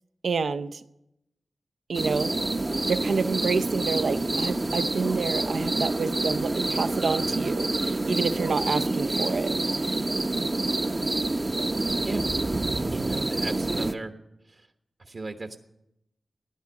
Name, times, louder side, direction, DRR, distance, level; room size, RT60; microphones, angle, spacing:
voice 1, 0.2-0.8 1.9-2.4 2.9-10.0, right 5 dB, 75° right, 12 dB, 0.6 m, -29 dB
sound 1, 1.9-13.9, right 2 dB, 30° right, 0.7 m, -27 dB
voice 2, 12.9-14.1 14.5-14.7 15.0-15.6, right 3 dB, 50° right, 5 dB, 1.1 m, -37 dB
16.0 x 11.0 x 7.2 m, 0.85 s
wide cardioid pair, 90°, 0 cm